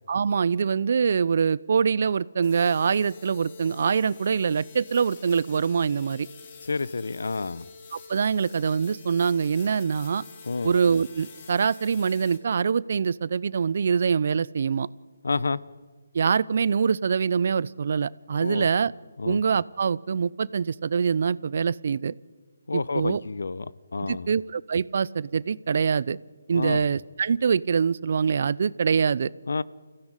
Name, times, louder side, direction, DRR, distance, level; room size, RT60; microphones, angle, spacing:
voice 1, 0.1-6.3 7.9-10.2 10.6-14.9 16.1-18.9 19.2-22.1 22.7-23.2 24.1-26.2 26.5-29.3, right 6 dB, 50° right, 22 dB, 0.7 m, -24 dB
sound 1, 2.4-12.4, left 5 dB, 40° left, 4.5 m, -46 dB
voice 2, 6.6-7.7 10.5-10.7 15.2-15.6 18.4-18.7 19.2-19.4 22.7-24.3 26.5-26.8 29.5-29.6, left 4 dB, 70° left, 19 dB, 1.0 m, -29 dB
28.5 x 16.5 x 10.0 m, 1.5 s
figure-of-eight pair, 150°, 0 cm